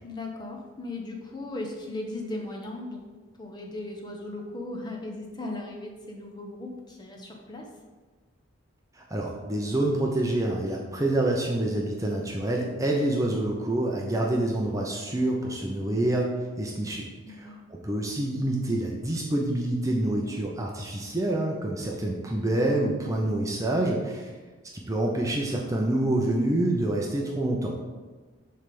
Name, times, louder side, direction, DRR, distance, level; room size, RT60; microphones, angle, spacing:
voice 1, 0.0-3.1 3.4-7.7 17.2-17.6, left 2 dB, 20° left, 0 dB, 0.9 m, -37 dB
voice 2, 8.9-16.3 16.6-24.3 24.7-27.8, right 1 dB, 15° right, -1 dB, 0.6 m, -27 dB
7.1 x 3.3 x 5.2 m, 1.3 s
head